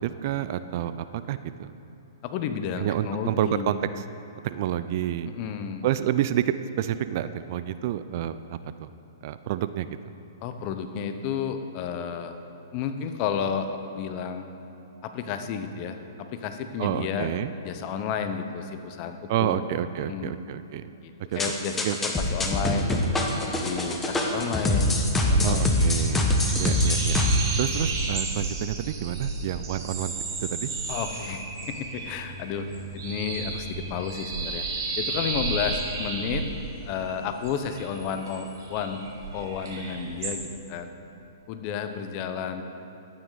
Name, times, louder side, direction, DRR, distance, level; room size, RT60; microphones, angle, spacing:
voice 1, 0.0-1.7 2.8-4.0 4.4-5.3 5.8-8.9 9.2-9.9 16.8-17.5 19.3-20.9 21.3-21.4 21.8-22.0 25.4-26.3 26.6-27.2 27.6-30.1 30.4-30.7, right 11 dB, 50° right, 13 dB, 0.4 m, -29 dB
voice 2, 2.2-3.7 5.2-5.9 10.4-12.3 12.7-14.4 15.0-17.3 17.6-19.7 20.0-20.4 21.0-22.9 23.4-26.3 30.9-32.7 32.9-34.6 35.0-36.5 36.8-39.0 39.3-40.9 41.5-42.6, left 7 dB, 35° left, 8 dB, 0.8 m, -32 dB
sound 1, 21.4-27.4, left 1 dB, 10° left, 1.0 m, -24 dB
sound 2, 24.3-40.4, right 3 dB, 65° right, 2.3 m, -33 dB
12.5 x 9.0 x 4.0 m, 2.9 s
hypercardioid pair, 130°, 2 cm